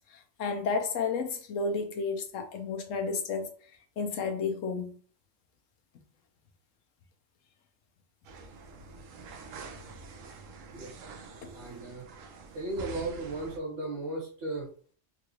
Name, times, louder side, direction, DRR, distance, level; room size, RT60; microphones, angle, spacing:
voice 1, 0.1-3.5 4.0-5.0 11.4-11.5, left 4 dB, 90° left, 1.0 m, -32 dB
sound 1, 8.2-13.6, right 4 dB, 85° right, 1.0 m, -46 dB
voice 2, 11.5-12.1 12.5-14.7, right 2 dB, 60° right, 1.8 m, -36 dB
3.8 x 2.4 x 2.9 m
omnidirectional pair, 1.3 m